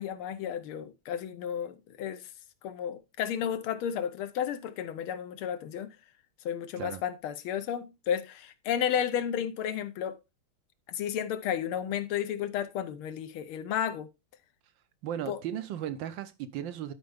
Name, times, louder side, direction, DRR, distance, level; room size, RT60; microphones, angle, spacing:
voice 1, 0.0-2.3 2.6-6.0 6.4-10.2 10.9-14.1 15.3-15.4, left 9 dB, 75° left, 1.6 m, -32 dB
voice 2, 15.0-16.9, right 10 dB, 75° right, 1.2 m, -36 dB
11.5 x 4.4 x 3.4 m
omnidirectional pair, 2.4 m